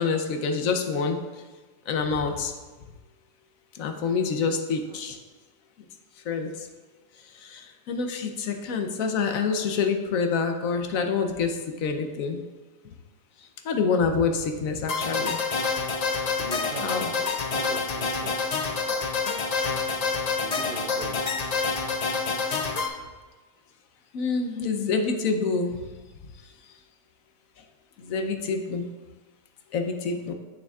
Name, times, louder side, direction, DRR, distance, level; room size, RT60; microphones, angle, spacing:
voice 1, 0.0-1.4 1.9-2.5 3.7-5.2 6.2-6.7 7.2-12.4 13.4-15.4 16.8-17.1 19.5-19.7 22.5-22.7 24.1-25.8 28.0-28.9 29.7-30.3, left 5 dB, 75° left, 5 dB, 1.1 m, -27 dB
sound 1, 14.9-22.9, left 4 dB, 55° left, 0.4 m, -27 dB
voice 2, 16.4-18.4 20.4-21.2, right 3 dB, 60° right, 2 dB, 0.6 m, -40 dB
8.8 x 6.7 x 2.3 m, 1.3 s
omnidirectional pair, 1.4 m